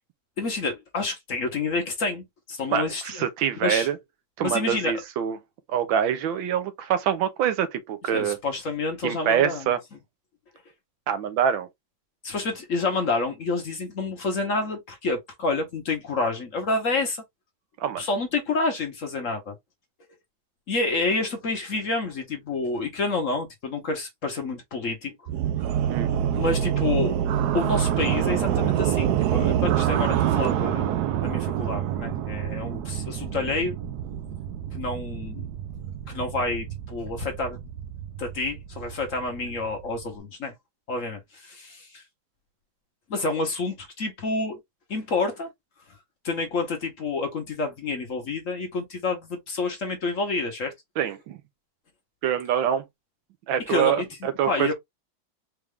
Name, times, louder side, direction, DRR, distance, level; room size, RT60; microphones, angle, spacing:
voice 1, 0.4-3.3 3.6-3.9 4.4-4.9 8.1-9.7 12.2-17.2 18.0-19.6 20.7-25.1 26.3-27.2 27.5-33.7 34.7-35.5 36.1-37.6 38.2-40.5 40.9-42.0 43.1-44.6 44.9-45.5 46.2-50.7 53.7-54.0 54.5-54.7, left 3 dB, 50° left, 1.1 m, -28 dB
voice 2, 2.7-4.0 4.4-5.4 5.7-8.4 9.0-9.8 11.1-11.7 17.8-18.0 25.9-26.1 32.7-32.8 51.0-51.4 52.2-52.8 53.5-54.7, right 9 dB, 85° right, 1.5 m, -25 dB
sound 1, 25.3-40.2, right 10 dB, 70° right, 1.0 m, -27 dB
4.6 x 2.4 x 3.4 m
omnidirectional pair, 2.1 m